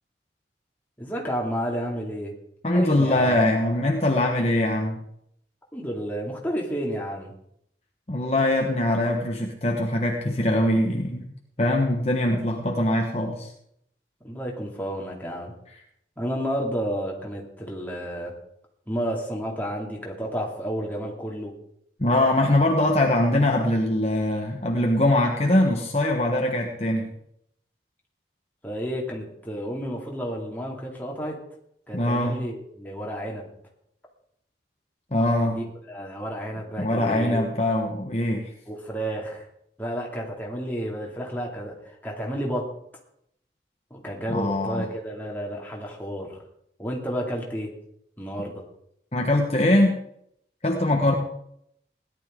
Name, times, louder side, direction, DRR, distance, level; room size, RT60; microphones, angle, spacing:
voice 1, 1.0-2.3 2.7-3.4 5.7-7.3 14.2-15.5 16.2-18.3 18.9-21.5 28.6-31.4 31.9-33.5 35.4-37.4 38.7-39.5 39.8-42.7 43.9-46.4 46.8-47.7 48.2-48.6, equal, 10° left, -2 dB, 2.5 m, -31 dB
voice 2, 2.6-5.0 8.1-11.3 11.6-13.5 22.0-27.1 31.9-32.4 35.1-35.6 36.8-38.5 44.3-44.9 49.1-50.0 50.6-51.2, left 1 dB, 35° left, 1 dB, 1.3 m, -22 dB
17.0 x 11.5 x 3.8 m, 0.73 s
head